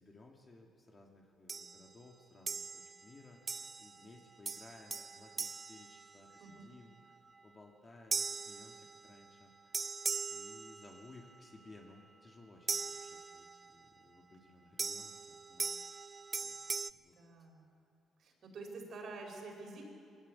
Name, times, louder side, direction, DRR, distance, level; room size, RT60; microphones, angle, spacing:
voice 1, 0.0-7.1 7.4-9.8 10.3-16.0 16.4-16.6 16.9-17.1, left 2 dB, 30° left, 0 dB, 2.3 m, -58 dB
sound 1, 1.5-1.9 2.5-3.1 3.5-4.0 4.5-6.6 8.1-9.3 9.7-11.2 12.7-13.7 14.8-16.9, right 4 dB, 35° right, 0.4 m, -40 dB
voice 2, 17.2-17.8 18.2-19.8, right 3 dB, 60° right, 2 dB, 4.9 m, -48 dB
21.5 x 16.0 x 8.5 m, 2.4 s
cardioid pair, 90°, 0 cm